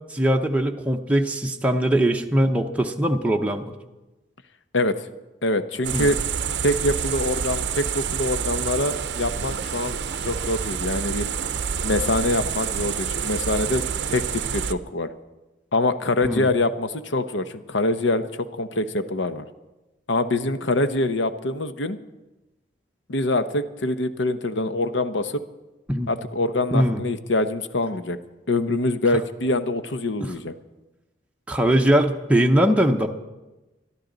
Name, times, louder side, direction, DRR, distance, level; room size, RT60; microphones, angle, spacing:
voice 1, 0.1-3.7 5.9-6.1 16.2-16.5 25.9-26.1 26.7-27.0 30.2-30.3 31.5-33.1, right 1 dB, 5° right, 2 dB, 0.7 m, -21 dB
voice 2, 5.4-6.2 6.6-9.9 10.3-11.3 11.8-13.8 14.1-15.1 15.7-19.4 20.1-22.0 23.1-25.4 26.1-28.2 28.5-30.5, left 2 dB, 75° left, 10 dB, 0.8 m, -24 dB
sound 1, 5.8-14.7, right 7 dB, 60° right, 0.6 m, -28 dB
22.0 x 12.5 x 4.0 m, 1.1 s
head